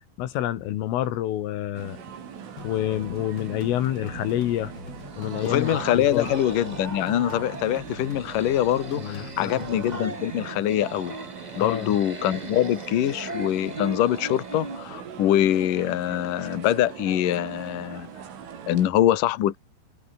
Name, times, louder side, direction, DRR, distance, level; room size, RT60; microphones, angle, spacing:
voice 1, 0.2-2.0 2.6-4.7 5.2-6.3 9.0-9.7 10.0-10.1 11.6-12.0, left 12 dB, 90° left, 4.6 m, -28 dB
sound 1, 1.8-18.9, right 8 dB, 85° right, 6.7 m, -40 dB
sound 2, 2.6-10.0, left 3 dB, 25° left, 4.0 m, -42 dB
sound 3, 4.9-14.9, right 1 dB, 10° right, 3.0 m, -40 dB
voice 2, 5.4-11.2 11.6-18.1 18.7-19.6, left 12 dB, 55° left, 2.8 m, -24 dB
omnidirectional pair, 5.6 m